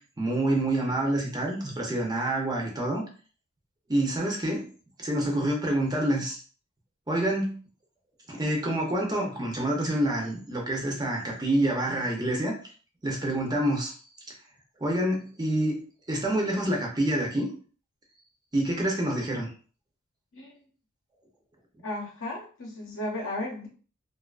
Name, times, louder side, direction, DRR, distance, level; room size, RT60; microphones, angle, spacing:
voice 1, 0.0-3.0 3.9-4.7 5.0-6.4 7.1-7.6 8.3-12.5 13.0-13.9 14.8-17.5 18.5-19.5, right 1 dB, 20° right, 0 dB, 0.5 m, -27 dB
voice 2, 21.8-23.7, left 1 dB, 60° left, -1 dB, 0.8 m, -34 dB
2.4 x 2.2 x 2.3 m, 0.40 s
head